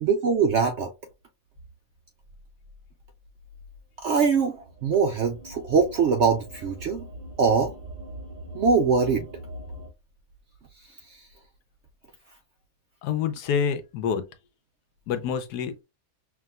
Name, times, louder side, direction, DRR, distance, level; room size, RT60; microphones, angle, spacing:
voice 1, 0.0-0.9 4.0-7.1 7.4-7.7 8.5-9.3 11.1-11.3, right 5 dB, 70° right, 0.6 m, -23 dB
sound 1, 4.0-9.9, right 1 dB, 45° right, 2.1 m, -42 dB
voice 2, 13.0-14.2 15.1-15.8, left 7 dB, 80° left, 1.2 m, -27 dB
5.8 x 2.7 x 2.3 m
omnidirectional pair, 1.7 m